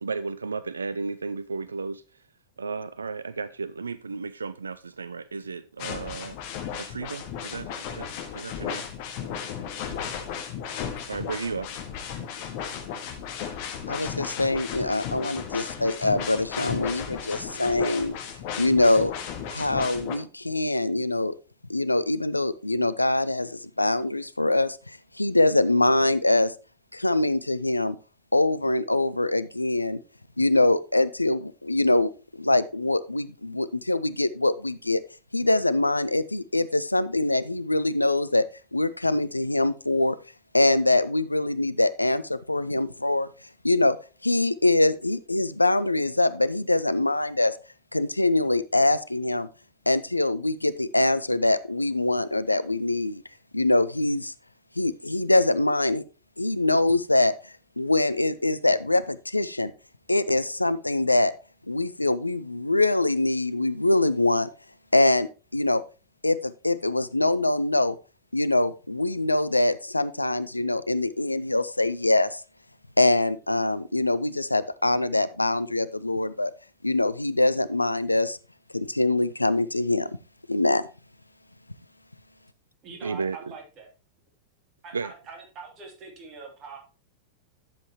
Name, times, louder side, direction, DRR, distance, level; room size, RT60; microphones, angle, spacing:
voice 1, 0.0-2.0 2.6-6.4 6.8-8.9 11.1-11.9 83.0-83.4 84.9-85.1, right 4 dB, 75° right, 0.3 m, -34 dB
sound 1, 5.8-20.1, left 8 dB, 45° left, 1.7 m, -35 dB
voice 2, 13.9-18.2 18.6-19.1 19.5-21.3 21.7-26.5 26.9-28.0 28.3-30.0 30.4-35.0 35.3-38.4 38.7-40.2 40.5-43.3 43.6-44.0 44.2-47.5 47.9-49.5 49.9-53.2 53.5-54.3 54.8-56.0 56.4-57.3 57.8-59.7 60.1-61.3 61.7-64.5 64.9-65.8 66.2-68.0 68.3-72.4 73.0-76.5 76.8-78.4 78.7-80.1 80.5-80.9, left 2 dB, 85° left, 0.5 m, -23 dB
voice 3, 82.8-83.9 84.8-86.8, right 4 dB, 35° right, 3.1 m, -43 dB
11.5 x 7.6 x 3.0 m
figure-of-eight pair, 90°, 0 cm